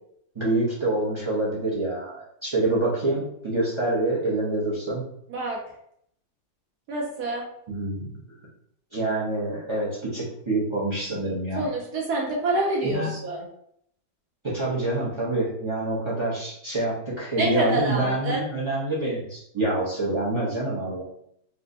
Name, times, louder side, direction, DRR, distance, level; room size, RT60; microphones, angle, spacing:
voice 1, 0.3-5.0 7.7-8.1 8.9-11.6 12.8-13.1 14.4-21.0, right 2 dB, 40° right, -7 dB, 0.4 m, -26 dB
voice 2, 6.9-7.4 11.6-13.4 17.4-18.4, right 2 dB, 70° right, -2 dB, 1.1 m, -27 dB
4.4 x 2.2 x 2.6 m, 0.71 s
omnidirectional pair, 1.9 m